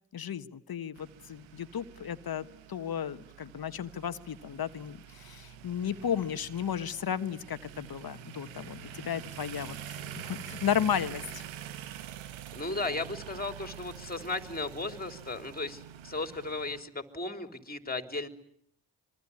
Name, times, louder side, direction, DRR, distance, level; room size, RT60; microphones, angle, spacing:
voice 1, 0.1-9.8 10.2-11.4, left 8 dB, 50° left, 11 dB, 1.4 m, -34 dB
sound 1, 1.0-16.8, right 9 dB, 85° right, 1.5 m, -46 dB
voice 2, 12.5-18.3, left 3 dB, 20° left, 8 dB, 3.7 m, -35 dB
25.5 x 23.0 x 9.8 m, 0.68 s
supercardioid pair, 50°, 46 cm